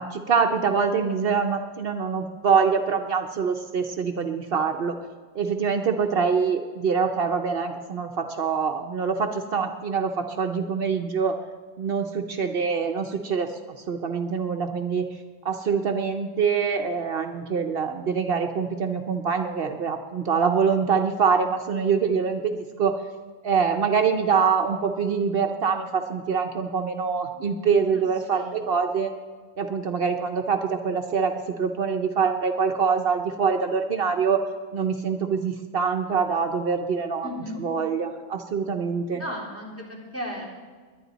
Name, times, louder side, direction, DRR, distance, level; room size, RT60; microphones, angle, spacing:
voice 1, 0.0-4.9 5.3-11.4 11.8-13.5 13.9-15.1 15.4-23.0 23.4-29.1 29.6-31.3 31.6-34.4 34.7-37.3 37.6-39.2, right 6 dB, 65° right, 5 dB, 1.0 m, -24 dB
voice 2, 28.3-28.7 37.2-37.6 39.1-40.5, left 1 dB, 15° left, -5 dB, 3.6 m, -35 dB
21.0 x 10.5 x 4.0 m, 1.5 s
omnidirectional pair, 1.1 m